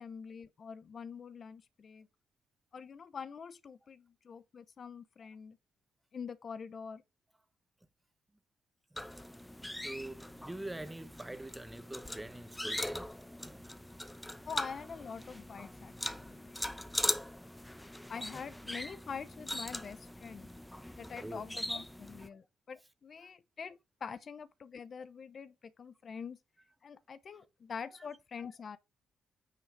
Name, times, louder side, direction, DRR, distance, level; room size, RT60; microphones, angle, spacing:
voice 1, 0.0-2.1 2.7-5.6 6.1-7.0 14.4-16.6 18.1-20.5 21.0-26.4 26.8-28.8, left 6 dB, 45° left, 0.7 m, -45 dB
sound 1, 9.0-22.3, left 1 dB, 5° left, 0.8 m, -41 dB
voice 2, 9.8-13.7 18.9-19.0 21.2-21.4, right 1 dB, 10° right, 1.1 m, -45 dB
9.2 x 5.6 x 4.0 m
cardioid pair, 95°, 0 cm